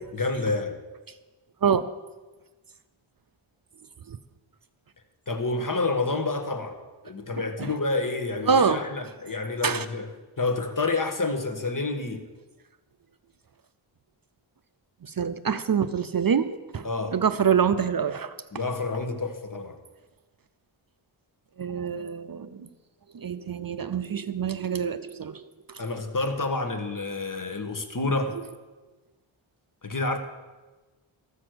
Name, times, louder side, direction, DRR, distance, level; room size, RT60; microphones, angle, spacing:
voice 1, 0.1-0.8 5.3-10.1 10.4-12.2 16.8-17.2 18.5-19.8 25.8-28.4 29.8-30.2, left 3 dB, 40° left, 7 dB, 1.4 m, -29 dB
voice 2, 8.5-8.8 9.6-9.8 15.2-16.8 17.1-18.3 21.6-22.7 23.1-25.4, right 7 dB, 45° right, 12 dB, 0.6 m, -25 dB
13.5 x 6.5 x 7.8 m, 1.2 s
wide cardioid pair, 65°, 49 cm